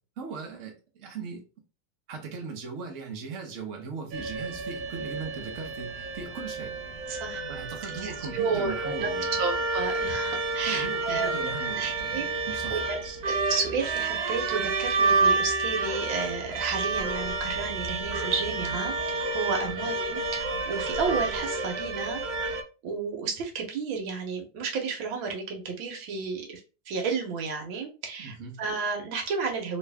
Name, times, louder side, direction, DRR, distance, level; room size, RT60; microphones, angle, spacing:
voice 1, 0.2-1.4 2.1-6.8 7.5-9.4 10.7-12.9 19.6-19.9 28.2-28.6, right 5 dB, 50° right, 1.2 m, -39 dB
sound 1, 4.1-22.6, right 3 dB, 65° right, 1.1 m, -30 dB
voice 2, 7.1-7.4 8.0-9.1 9.4-12.3 12.7-19.0 19.3-22.2 22.8-26.6 26.9-29.8, right 5 dB, 85° right, 1.8 m, -32 dB
3.2 x 3.0 x 3.4 m
omnidirectional pair, 2.1 m